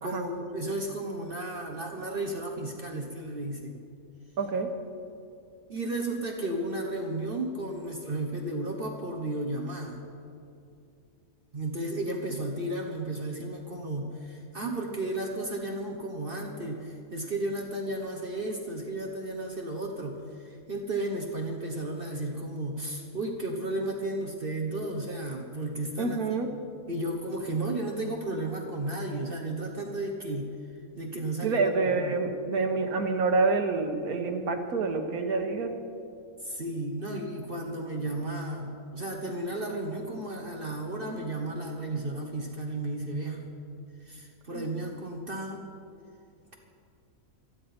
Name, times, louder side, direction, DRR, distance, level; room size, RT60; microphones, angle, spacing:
voice 1, 0.0-3.8 5.7-10.0 11.5-26.4 26.9-30.5 31.0-31.6 31.9-32.2 36.4-43.4 44.1-45.6, right 2 dB, 40° right, 0 dB, 1.4 m, -33 dB
voice 2, 4.4-4.7 26.0-26.5 31.4-35.7 44.5-44.7, right 3 dB, 85° right, 5 dB, 1.7 m, -27 dB
28.0 x 9.9 x 4.4 m, 2.6 s
omnidirectional pair, 1.5 m